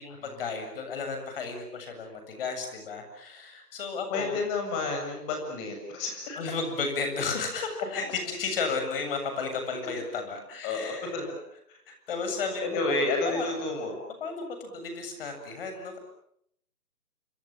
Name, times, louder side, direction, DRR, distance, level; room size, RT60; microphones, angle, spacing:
voice 1, 0.0-4.4 6.4-11.1 11.9-12.6 13.2-13.5 14.2-16.0, left 4 dB, 35° left, 6 dB, 7.6 m, -33 dB
voice 2, 4.1-6.4 10.6-11.2 11.7-11.8 12.6-14.0, left 3 dB, 20° left, 3 dB, 7.2 m, -30 dB
29.5 x 27.0 x 7.4 m, 0.71 s
hypercardioid pair, 160°, 46 cm